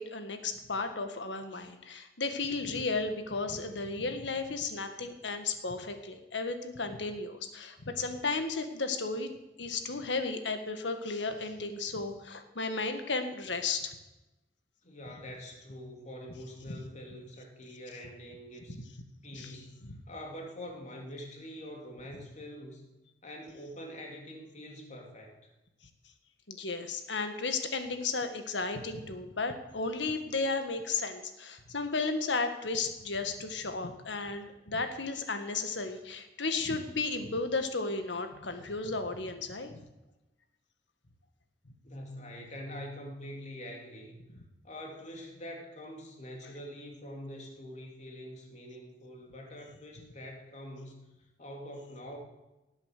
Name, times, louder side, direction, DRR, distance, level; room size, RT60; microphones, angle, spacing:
voice 1, 0.0-9.3 9.6-13.9 16.7-16.8 19.3-19.5 19.8-20.0 26.5-39.8, left 3 dB, 85° left, 7 dB, 1.6 m, -34 dB
voice 2, 14.8-18.8 19.2-22.9 23.2-25.3 41.8-44.1 44.6-51.1 51.4-52.2, equal, 40° left, 1 dB, 2.9 m, -45 dB
18.5 x 8.2 x 6.7 m, 1.0 s
head